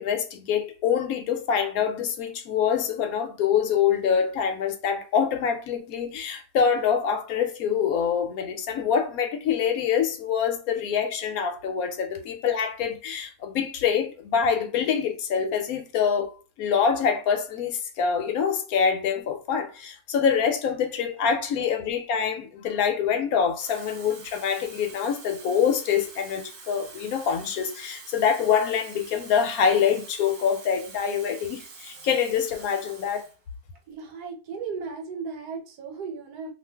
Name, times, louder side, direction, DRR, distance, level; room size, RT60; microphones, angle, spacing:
voice 1, 0.0-33.2, left 7 dB, 75° left, 1.0 m, -25 dB
Water tap faucet / Fill (with liquid), 23.5-33.4 33.8-34.0, right 4 dB, 60° right, 0.5 m, -46 dB
voice 2, 33.9-36.5, right 5 dB, 90° right, 1.3 m, -35 dB
2.5 x 2.5 x 3.3 m
omnidirectional pair, 1.6 m